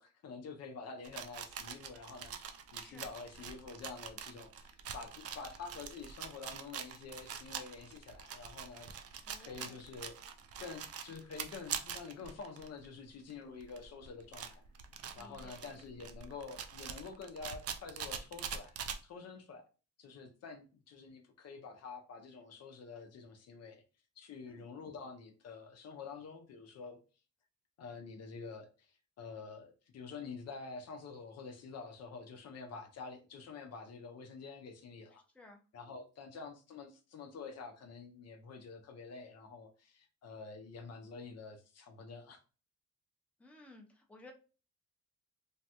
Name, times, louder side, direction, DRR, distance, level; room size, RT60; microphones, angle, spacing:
voice 1, 0.0-8.9 9.1-10.1 10.6-14.6 15.2-18.7 19.0-19.7 20.0-23.8 24.2-27.0 27.8-35.2 35.7-42.4, left 4 dB, 55° left, 0.6 m, -48 dB
sound 1, 1.0-12.9 13.3-13.4 13.6-19.0, right 7 dB, 55° right, 0.4 m, -44 dB
voice 2, 2.8-3.1 9.3-9.8 15.1-15.6 24.5-24.6 35.3-35.6 43.4-44.3, left 2 dB, 5° left, 0.6 m, -56 dB
3.2 x 2.2 x 2.8 m
cardioid pair, 90°, 30 cm